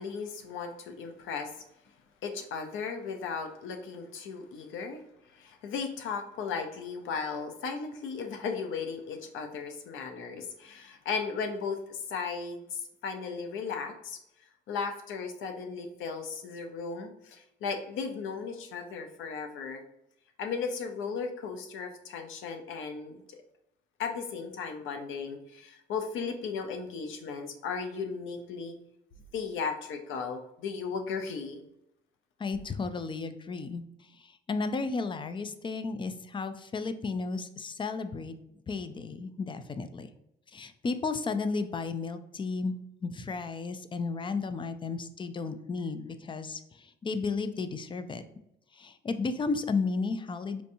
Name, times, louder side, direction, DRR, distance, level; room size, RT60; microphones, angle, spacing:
voice 1, 0.0-1.5 2.2-5.0 5.3-14.2 14.7-19.8 20.4-23.4 24.0-28.8 29.3-31.6, left 5 dB, 80° left, 5 dB, 0.7 m, -36 dB
voice 2, 32.4-33.8 34.2-38.4 38.7-40.1 40.5-42.7 43.0-48.2 48.7-50.6, left 4 dB, 25° left, 10 dB, 0.4 m, -33 dB
4.5 x 2.7 x 2.6 m, 0.83 s
cardioid pair, 90°, 20 cm